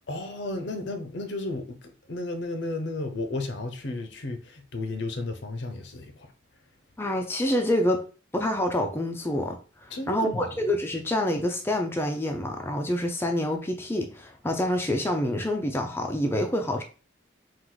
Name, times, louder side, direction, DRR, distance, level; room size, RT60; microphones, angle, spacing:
voice 1, 0.1-6.3 9.9-10.6, left 2 dB, 60° left, 0.7 m, -33 dB
voice 2, 7.0-8.0 8.3-9.6 9.8-16.8, left 1 dB, 10° left, 0.5 m, -27 dB
4.6 x 2.5 x 3.8 m
head